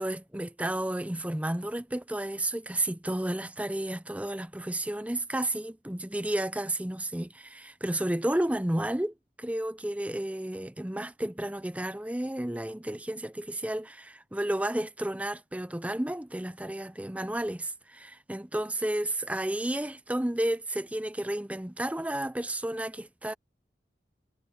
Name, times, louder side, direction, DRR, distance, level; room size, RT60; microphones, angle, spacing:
voice 1, 0.0-23.3, right 1 dB, 10° right, 0.6 m, -32 dB
head